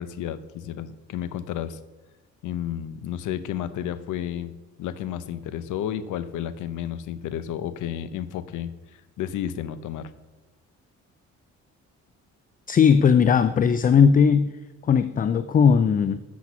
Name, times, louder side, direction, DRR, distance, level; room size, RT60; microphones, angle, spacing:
voice 1, 0.0-1.8 2.4-4.5 4.8-10.1, left 10 dB, 80° left, 14 dB, 0.7 m, -32 dB
voice 2, 12.7-14.5 14.8-16.2, left 6 dB, 30° left, 13 dB, 0.4 m, -18 dB
8.2 x 6.1 x 5.9 m, 1.1 s
cardioid pair, 90°, 30 cm